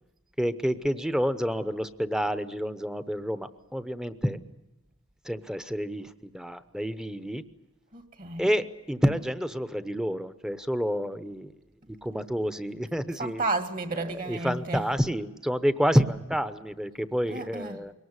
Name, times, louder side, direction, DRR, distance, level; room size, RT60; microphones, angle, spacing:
voice 1, 0.4-4.4 5.2-7.4 8.4-11.5 11.9-13.4 14.0-17.9, equal, 5° right, 0.8 m, -29 dB
voice 2, 7.9-8.5 13.2-14.8 17.3-17.8, right 2 dB, 45° right, 1.8 m, -32 dB
22.5 x 19.0 x 9.7 m
head